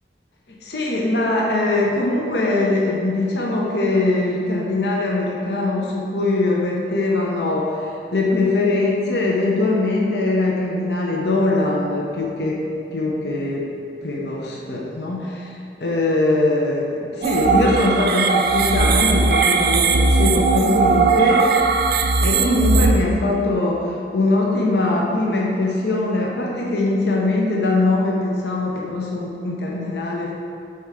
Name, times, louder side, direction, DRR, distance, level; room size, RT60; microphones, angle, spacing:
voice 1, 0.6-12.6 12.9-13.7 14.0-21.5 22.2-30.3, left 2 dB, 70° left, -2 dB, 0.8 m, -21 dB
sound 1, 17.2-22.9, right 4 dB, 55° right, 0.4 m, -18 dB
7.5 x 4.3 x 3.7 m, 2.4 s
head